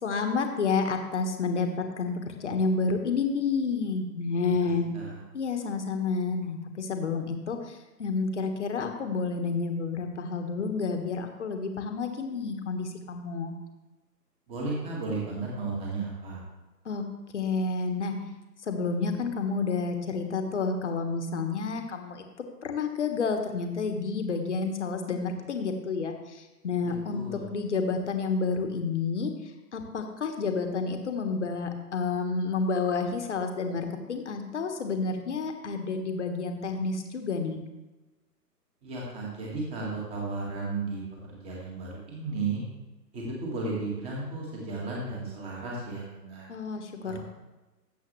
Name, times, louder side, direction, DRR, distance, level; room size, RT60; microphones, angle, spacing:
voice 1, 0.0-2.1 2.4-4.8 5.3-13.5 16.8-17.1 17.3-18.2 18.7-22.2 22.6-29.3 29.7-37.6 46.5-47.2, left 4 dB, 45° left, 5 dB, 1.4 m, -30 dB
voice 2, 14.5-16.4 26.8-27.5 38.8-41.0 41.3-42.6 43.1-46.5 47.0-47.2, right 3 dB, 10° right, -3 dB, 1.9 m, -34 dB
12.5 x 8.1 x 3.2 m, 1.1 s
figure-of-eight pair, 140°, 50 cm